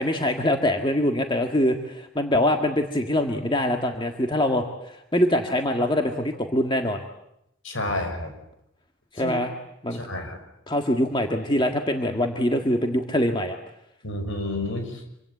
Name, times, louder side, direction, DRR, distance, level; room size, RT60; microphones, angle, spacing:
voice 1, 0.0-7.0 9.1-9.5 9.8-10.1 10.7-13.6, left 1 dB, 20° left, 4 dB, 1.7 m, -24 dB
voice 2, 7.6-8.3 9.2-9.3 9.9-10.4 14.0-15.0, left 1 dB, 65° left, 6 dB, 6.1 m, -30 dB
26.5 x 25.0 x 8.5 m, 0.78 s
head